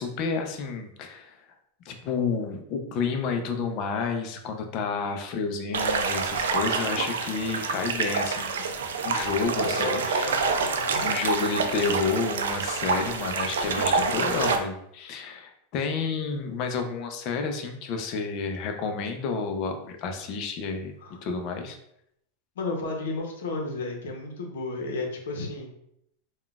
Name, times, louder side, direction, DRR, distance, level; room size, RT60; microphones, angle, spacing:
voice 1, 0.0-1.4 1.9-8.8 9.0-10.4 11.0-20.9 21.2-21.8, left 4 dB, 45° left, 5 dB, 0.5 m, -30 dB
sound 1, 5.7-14.6, right 4 dB, 90° right, 0.4 m, -27 dB
voice 2, 9.4-11.2 14.0-14.4 21.0-21.2 22.6-25.7, left 3 dB, 85° left, 1 dB, 0.8 m, -33 dB
3.7 x 2.3 x 2.4 m, 0.76 s
supercardioid pair, 130°, 0 cm